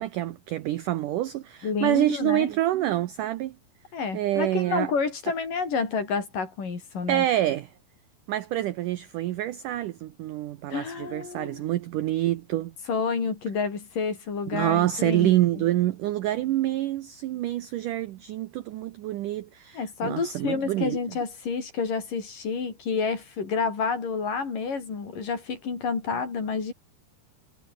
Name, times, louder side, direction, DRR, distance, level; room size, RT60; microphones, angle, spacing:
voice 1, 0.0-3.6 4.1-4.9 7.1-7.7 8.3-12.7 14.5-21.0, right 14 dB, 75° right, 1.9 m, -27 dB
voice 2, 1.6-2.5 3.9-7.3 10.7-11.7 12.9-15.3 15.6-15.7 19.7-26.7, left 5 dB, 50° left, 6.4 m, -29 dB
omnidirectional pair, 4.9 m